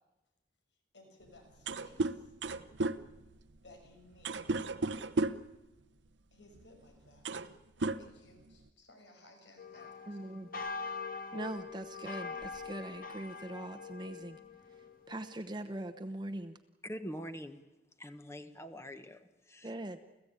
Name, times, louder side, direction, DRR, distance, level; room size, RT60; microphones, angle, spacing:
voice 1, 0.9-2.3 3.6-4.4 6.3-7.3 8.0-9.9, left 2 dB, 80° left, 4 dB, 6.2 m, -59 dB
sound 1, 1.3-1.4 1.5-5.6 6.6-6.7 7.1-7.5 7.8-8.7, right 3 dB, 85° right, 0.9 m, -34 dB
sound 2, 9.6-15.4, left 5 dB, 50° left, 1.8 m, -43 dB
voice 2, 10.1-10.6 11.3-14.4 15.1-16.6 19.6-20.1, right 1 dB, 25° right, 7 dB, 0.9 m, -41 dB
voice 3, 16.8-17.6 18.0-19.8, equal, 15° left, 9 dB, 1.1 m, -44 dB
30.0 x 15.0 x 8.8 m, 1.0 s
head